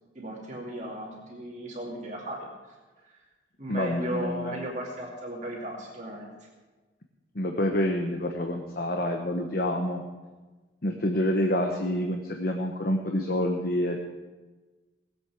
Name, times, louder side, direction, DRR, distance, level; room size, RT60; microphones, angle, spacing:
voice 1, 0.1-2.5 3.0-3.1 3.6-6.3, right 1 dB, 40° right, -2 dB, 2.6 m, -36 dB
voice 2, 3.7-4.5 7.3-10.0 10.8-14.0, left 1 dB, 50° left, 3 dB, 1.1 m, -27 dB
19.0 x 8.2 x 6.3 m, 1.3 s
head